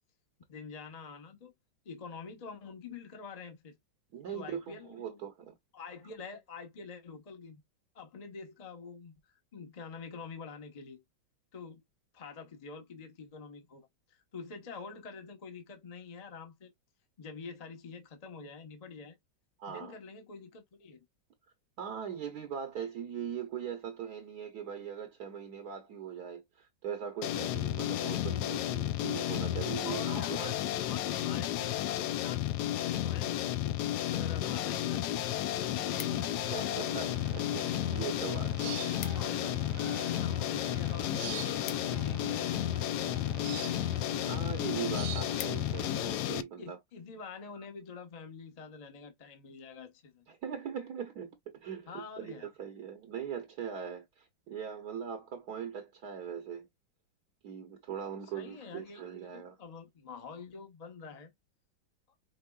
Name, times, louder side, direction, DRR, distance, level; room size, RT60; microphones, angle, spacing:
voice 1, 0.5-1.5 1.8-3.8 4.3-5.2 5.7-7.6 7.9-9.1 9.5-11.0 11.5-11.8 12.1-16.7 17.2-19.2 19.7-21.0 29.8-33.8 34.1-36.2 38.6-38.8 39.1-39.6 40.1-41.4 41.9-42.5 43.0-43.7 46.6-50.2 51.9-52.5 58.3-61.3, left 5 dB, 30° left, 0.7 m, -46 dB
voice 2, 4.1-5.5 19.6-19.9 21.8-30.7 36.5-39.2 44.2-46.8 50.3-56.7 57.4-59.6, right 8 dB, 60° right, 1.2 m, -41 dB
sound 1, 27.2-46.4, left 12 dB, 75° left, 0.9 m, -32 dB
sound 2, 35.9-46.1, right 10 dB, 80° right, 1.4 m, -45 dB
sound 3, 36.0-36.6 37.3-37.8 38.1-38.2 38.5-38.6 38.8-39.4 39.8-42.6 43.3-43.7 44.2-44.3 44.6-44.7 45.0-46.0 46.5-46.7, left 12 dB, 90° left, 1.5 m, -48 dB
5.4 x 3.5 x 2.3 m
omnidirectional pair, 2.2 m